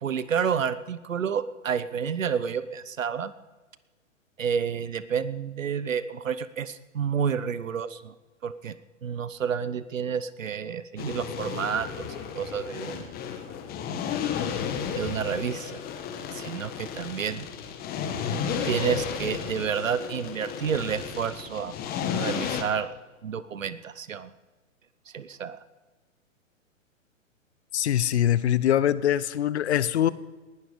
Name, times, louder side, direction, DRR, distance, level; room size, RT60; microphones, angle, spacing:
voice 1, 0.0-3.3 4.4-8.1 8.4-8.7 9.0-12.1 12.3-13.0 14.9-15.8 16.3-17.5 18.6-21.7 22.1-22.9 23.2-24.3 25.1-25.6, right 7 dB, 75° right, 16 dB, 1.1 m, -30 dB
sound 1, 11.0-22.6, left 7 dB, 25° left, 1.6 m, -33 dB
voice 2, 27.7-30.1, left 11 dB, 55° left, 18 dB, 0.9 m, -23 dB
19.5 x 11.5 x 5.2 m, 1.2 s
figure-of-eight pair, 120°, 40 cm